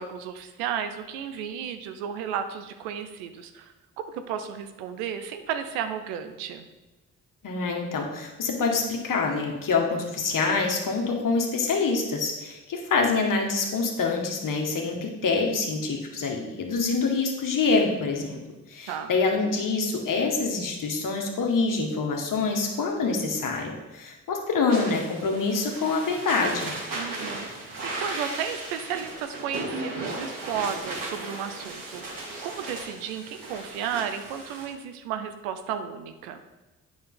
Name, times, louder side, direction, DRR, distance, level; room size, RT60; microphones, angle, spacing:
voice 1, 0.0-6.7 18.3-18.4 18.9-19.1 26.9-36.4, right 8 dB, 85° right, 9 dB, 0.7 m, -33 dB
voice 2, 7.4-18.4 18.7-26.7, left 4 dB, 55° left, 1 dB, 1.7 m, -26 dB
sound 1, 24.7-34.6, right 2 dB, 60° right, 2.7 m, -36 dB
8.9 x 5.9 x 3.9 m, 1.1 s
hypercardioid pair, 45°, 38 cm